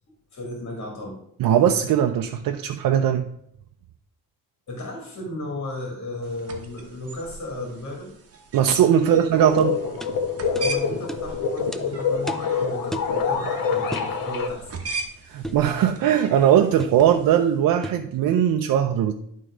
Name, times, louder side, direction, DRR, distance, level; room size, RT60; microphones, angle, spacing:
voice 1, 0.3-1.2 4.7-8.1 9.0-9.2 10.5-14.7 15.3-15.5, left 1 dB, 50° left, 0 dB, 2.4 m, -35 dB
voice 2, 1.4-3.3 8.5-9.8 15.3-19.1, right 9 dB, 85° right, 5 dB, 0.6 m, -19 dB
sound 1, 6.2-17.6, right 3 dB, 45° right, 1.2 m, -40 dB
sound 2, 9.3-14.5, left 5 dB, 85° left, 1.3 m, -26 dB
sound 3, 9.6-9.7 10.0-10.1 10.5-10.7 11.1-11.2 11.7-11.8 12.3-12.5 12.9-13.2 13.9-14.1 15.4-15.7 16.8-17.0 17.8-18.1, equal, ahead, 0.3 m, -33 dB
11.0 x 3.8 x 4.9 m, 0.73 s
cardioid pair, 140°, 33 cm